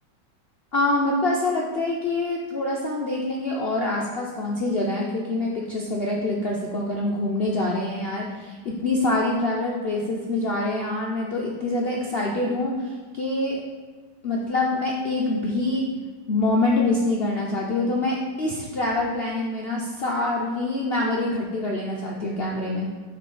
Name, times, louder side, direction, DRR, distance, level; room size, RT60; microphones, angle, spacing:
voice 1, 0.7-13.6 14.2-15.9 16.3-22.9, left 2 dB, 65° left, -2 dB, 0.6 m, -25 dB
6.7 x 4.1 x 5.5 m, 1.5 s
omnidirectional pair, 2.0 m